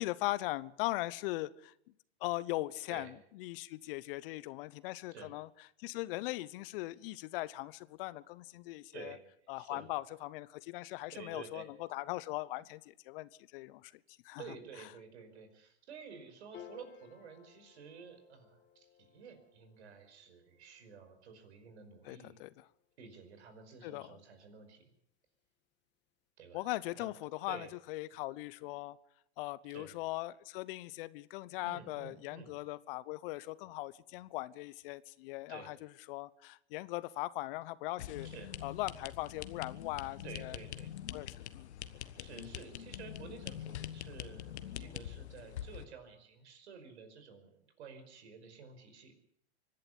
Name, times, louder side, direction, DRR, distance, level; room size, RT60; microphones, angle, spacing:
voice 1, 0.0-1.7 2.2-5.5 5.8-9.2 9.5-13.9 14.2-14.4 22.0-22.5 23.8-24.2 26.5-29.0 29.4-38.3 38.6-40.6 41.1-41.7 42.2-42.3, left 18 dB, 55° left, 19 dB, 1.0 m, -40 dB
voice 2, 11.1-11.7 14.4-22.4 23.0-24.8 26.4-26.7 27.0-27.1 27.5-27.7 29.7-29.9 31.6-32.5 35.5-35.7 38.2-38.5 40.2-40.9 42.2-49.1, right 6 dB, 70° right, 8 dB, 5.3 m, -51 dB
Piano, 16.5-23.2, left 9 dB, 30° left, 1.9 m, -59 dB
sound 1, 38.0-45.8, left 11 dB, 75° left, 1.4 m, -44 dB
25.0 x 11.0 x 9.8 m, 0.72 s
hypercardioid pair, 105°, 34 cm